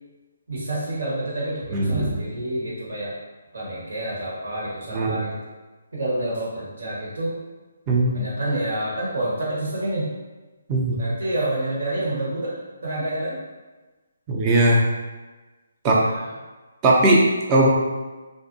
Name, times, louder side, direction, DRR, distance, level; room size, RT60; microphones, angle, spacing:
voice 1, 0.5-3.1 3.5-5.4 5.9-7.4 8.1-10.1 11.0-13.4 16.0-16.3, right 1 dB, 75° right, -6 dB, 1.2 m, -28 dB
voice 2, 1.7-2.1 4.9-5.2 7.9-8.1 10.7-11.0 14.3-14.8 15.8-16.1 16.8-17.7, right 1 dB, 20° right, -3 dB, 0.5 m, -18 dB
2.5 x 2.1 x 2.6 m, 1.2 s
figure-of-eight pair, 150°, 0 cm